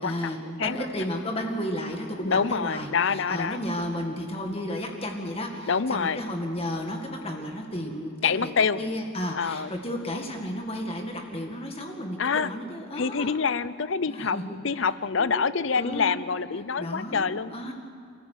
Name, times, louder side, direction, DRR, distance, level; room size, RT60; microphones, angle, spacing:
voice 1, 0.0-8.5 8.8-13.4 14.1-14.9 15.2-15.5 15.8-16.1 16.8-17.7, left 1 dB, 25° left, 2 dB, 1.9 m, -33 dB
voice 2, 2.2-3.6 5.7-6.2 8.2-8.8 9.3-9.7 12.2-12.5 13.0-14.4 14.6-17.5, left 5 dB, 60° left, 16 dB, 0.6 m, -26 dB
28.0 x 15.0 x 8.2 m, 2.3 s
head